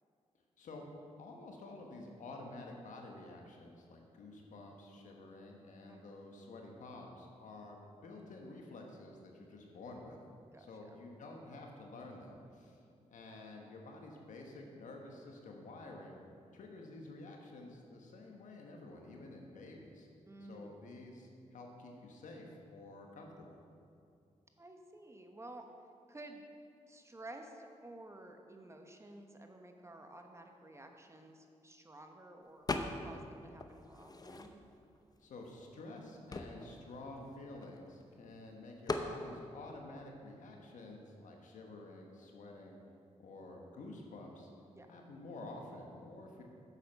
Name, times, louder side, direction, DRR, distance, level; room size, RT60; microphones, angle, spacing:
voice 1, 0.6-0.9 1.2-10.2 10.6-12.8 13.1-16.2 16.5-20.1 20.5-23.6 35.2-42.8 43.2-44.5 44.9-46.4, left 2 dB, 75° left, 1 dB, 1.2 m, -50 dB
voice 2, 10.5-11.0 20.3-20.7 24.6-25.7 26.1-26.4 26.9-32.7 33.0-34.5 44.8-44.9, right 2 dB, 20° right, 4 dB, 1.1 m, -53 dB
sound 1, 32.7-33.3 33.6-34.8 35.5-35.6 35.8-38.0 38.9-39.2, left 2 dB, 30° left, 0.7 m, -40 dB
8.1 x 7.0 x 5.4 m, 2.4 s
cardioid pair, 55°, 13 cm